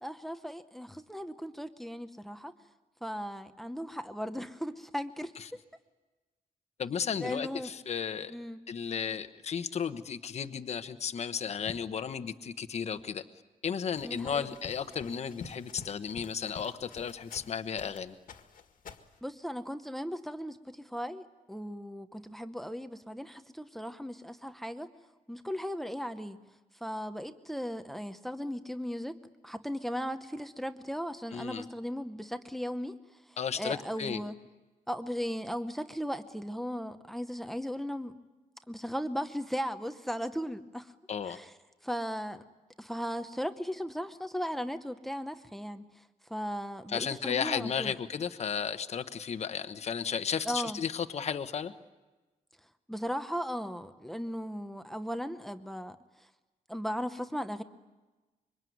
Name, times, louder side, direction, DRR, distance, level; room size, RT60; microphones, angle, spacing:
voice 1, 0.0-2.5 3.0-5.3 7.2-7.7 8.3-8.6 14.0-14.6 19.2-24.9 25.3-26.4 26.8-29.2 29.4-33.0 33.6-34.3 34.9-38.2 38.7-40.9 41.3-41.5 41.8-42.4 42.8-46.0 46.3-47.9 50.4-50.8 52.9-56.0 56.7-57.6, equal, ahead, 9 dB, 0.9 m, -37 dB
voice 2, 6.8-8.3 8.7-13.2 13.6-18.1 31.3-31.6 33.4-34.2 41.1-41.4 46.9-51.7, left 7 dB, 50° left, 10 dB, 1.1 m, -34 dB
sound 1, 13.9-18.0 18.3-19.2, left 6 dB, 70° left, 1.9 m, -48 dB
26.0 x 24.0 x 9.4 m, 1.2 s
wide cardioid pair, 175°, 15 cm